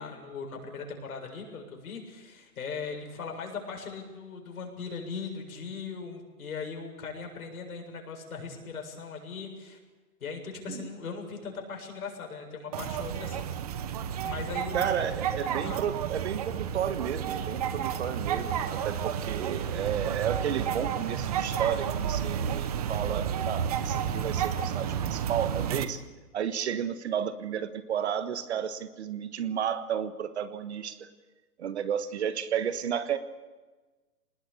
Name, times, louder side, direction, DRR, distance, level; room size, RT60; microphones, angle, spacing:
voice 1, 0.0-9.8 10.2-13.5 14.2-14.9 15.6-15.8, left 5 dB, 65° left, 2 dB, 7.5 m, -39 dB
sound 1, 12.7-25.8, right 8 dB, 25° right, 0.9 m, -31 dB
voice 2, 14.7-26.0 26.3-31.1 31.6-33.2, right 8 dB, 45° right, 11 dB, 1.5 m, -32 dB
26.0 x 20.0 x 8.7 m, 1.3 s
hypercardioid pair, 165°, 47 cm